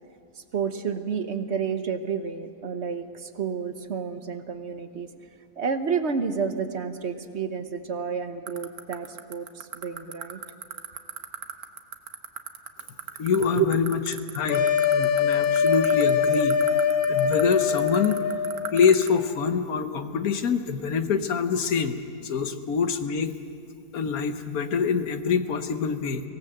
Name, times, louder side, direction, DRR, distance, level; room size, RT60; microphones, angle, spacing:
voice 1, 0.5-5.1 5.6-10.4 10.9-11.0 13.6-13.7, right 6 dB, 50° right, 9 dB, 1.2 m, -30 dB
sound 1, 8.5-19.1, right 8 dB, 75° right, 1.5 m, -34 dB
voice 2, 13.2-14.0 14.3-18.2 18.7-22.0 22.2-23.3 23.9-26.3, left 6 dB, 70° left, 9 dB, 1.5 m, -25 dB
sound 2, 14.5-18.9, left 7 dB, 90° left, 1.6 m, -23 dB
24.0 x 17.5 x 7.8 m, 2.3 s
omnidirectional pair, 1.6 m